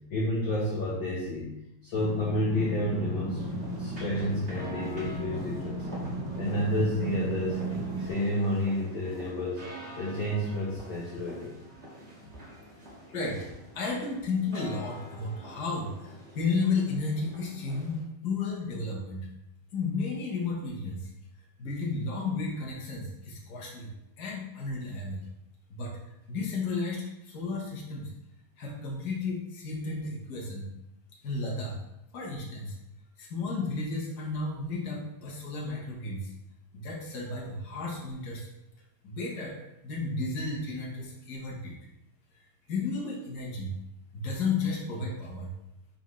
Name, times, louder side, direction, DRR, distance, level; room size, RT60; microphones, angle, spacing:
voice 1, 0.1-1.5 1.8-3.4 3.8-5.9 6.4-7.6 8.0-9.6 10.0-11.5, left 1 dB, 60° left, -5 dB, 1.3 m, -30 dB
sound 1, 1.9-8.1, right 2 dB, 65° right, 1.1 m, -35 dB
sound 2, 3.4-18.0, equal, 35° right, 1.1 m, -47 dB
voice 2, 13.1-13.5 13.7-19.3 19.7-21.1 21.6-23.9 24.2-25.2 25.7-26.0 26.3-28.1 28.6-30.7 31.2-31.8 32.1-32.8 33.2-36.3 36.7-38.5 39.0-39.6 39.8-41.8 42.7-43.7 44.1-45.5, left 3 dB, 80° left, -2 dB, 0.9 m, -33 dB
11.0 x 4.0 x 3.2 m, 0.87 s
omnidirectional pair, 3.8 m